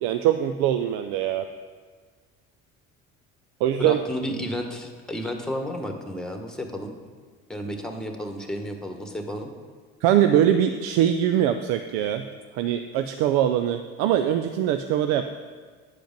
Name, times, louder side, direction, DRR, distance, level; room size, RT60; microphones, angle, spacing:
voice 1, 0.0-1.5 3.6-4.0 10.0-12.2 12.5-15.3, right 10 dB, 80° right, 8 dB, 0.5 m, -22 dB
voice 2, 3.8-6.9 7.5-9.5, equal, ahead, 4 dB, 1.3 m, -32 dB
9.3 x 5.1 x 5.2 m, 1.5 s
supercardioid pair, 75°, 34 cm